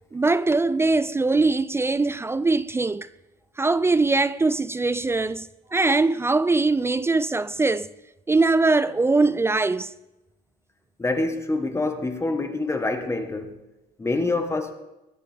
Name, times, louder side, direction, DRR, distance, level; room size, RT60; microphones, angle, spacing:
voice 1, 0.1-3.1 3.6-7.9 8.3-9.9, right 3 dB, 15° right, 0.3 m, -22 dB
voice 2, 11.0-13.6 14.0-14.7, left 2 dB, 15° left, 1.4 m, -26 dB
20.5 x 10.0 x 3.5 m
cardioid pair, 110°, 17 cm